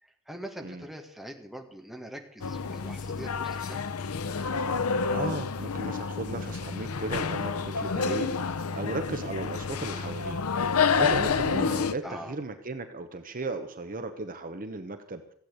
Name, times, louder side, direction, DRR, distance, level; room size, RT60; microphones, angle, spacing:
voice 1, 0.0-4.0 12.0-12.3, right 1 dB, ahead, 2 dB, 1.8 m, -43 dB
sound 1, 2.4-11.9, left 5 dB, 85° left, 0.7 m, -29 dB
voice 2, 5.1-10.4 11.0-15.3, right 2 dB, 40° right, 8 dB, 1.1 m, -36 dB
15.5 x 8.5 x 8.0 m, 0.63 s
head